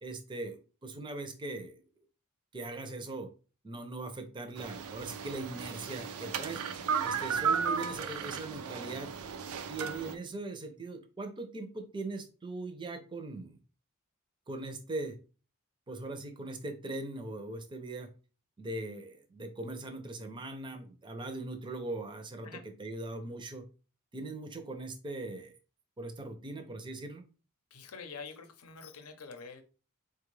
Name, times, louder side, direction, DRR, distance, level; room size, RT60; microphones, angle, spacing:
voice 1, 0.0-1.8 2.5-3.3 3.6-9.4 9.7-13.6 14.5-15.2 15.9-18.1 18.6-23.6 24.1-25.6 26.0-27.2, right 2 dB, 20° right, 6 dB, 0.5 m, -40 dB
sound 1, 4.6-10.1, right 6 dB, 80° right, 0.4 m, -34 dB
voice 2, 27.7-29.6, left 5 dB, 75° left, 7 dB, 0.7 m, -46 dB
4.4 x 2.3 x 3.1 m, 0.34 s
head